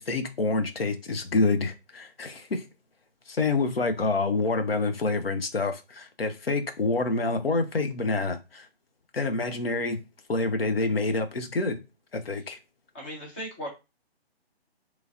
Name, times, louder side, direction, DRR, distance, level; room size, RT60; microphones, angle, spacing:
voice 1, 0.0-2.6 3.3-8.7 9.1-10.0 10.3-11.8 12.1-12.6, left 3 dB, 65° left, 0.7 m, -27 dB
voice 2, 12.9-13.7, equal, 10° left, 0.6 m, -37 dB
3.0 x 2.8 x 2.4 m
figure-of-eight pair, 140°, 32 cm